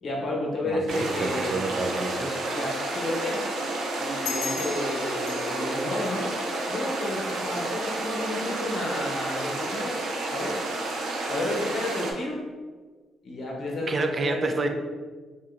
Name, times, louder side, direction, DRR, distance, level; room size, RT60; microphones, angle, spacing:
voice 1, 0.0-1.7 2.5-3.5 4.0-6.3 6.7-9.9 10.3-11.0 11.3-12.4 13.2-14.7, left 1 dB, 55° left, -2 dB, 0.8 m, -31 dB
voice 2, 0.6-2.6 13.9-14.7, right 3 dB, 40° right, 5 dB, 0.4 m, -29 dB
sound 1, 0.9-12.1, right 2 dB, 80° right, 0.6 m, -31 dB
Brass instrument, 1.9-6.8, left 1 dB, 20° left, 0.5 m, -39 dB
sound 2, 4.2-7.3, left 6 dB, 80° left, 0.3 m, -38 dB
4.7 x 2.8 x 2.5 m, 1.4 s
cardioid pair, 90°, 0 cm